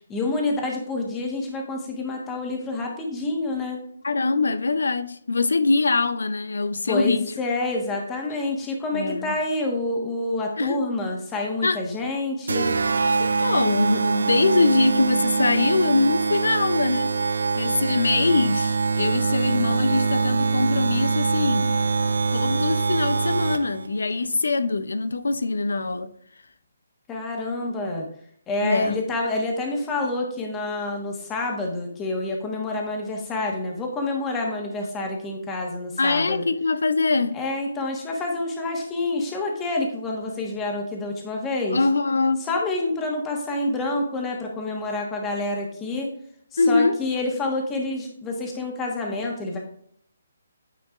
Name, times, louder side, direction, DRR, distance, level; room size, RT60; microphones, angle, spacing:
voice 1, 0.1-3.8 6.9-12.7 27.1-28.1 28.5-36.5 37.3-41.8 42.4-46.1 46.5-49.6, left 2 dB, 15° left, 1.2 m, -28 dB
voice 2, 4.0-7.3 8.9-9.3 10.6-10.8 11.6-11.8 13.2-17.2 17.6-21.9 22.3-26.1 28.6-29.0 36.0-37.4 41.7-42.5 46.6-47.0, left 3 dB, 85° left, 0.5 m, -23 dB
sound 1, 12.5-23.9, right 4 dB, 80° right, 0.4 m, -24 dB
9.1 x 4.6 x 2.4 m
hypercardioid pair, 160°, 0 cm